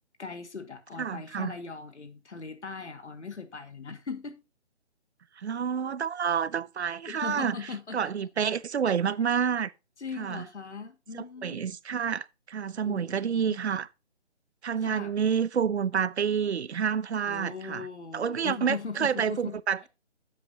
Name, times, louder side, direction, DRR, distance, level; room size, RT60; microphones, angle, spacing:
voice 1, 0.2-4.3 7.1-8.0 10.0-11.6 12.8-13.6 14.8-15.1 17.3-19.6, left 5 dB, 80° left, 2.0 m, -39 dB
voice 2, 1.0-1.6 5.4-7.6 7.9-9.7 10.2-10.5 11.1-13.9 14.6-17.9 18.1-19.9, right 7 dB, 70° right, 0.6 m, -29 dB
10.5 x 7.9 x 2.8 m
hypercardioid pair, 170°, 34 cm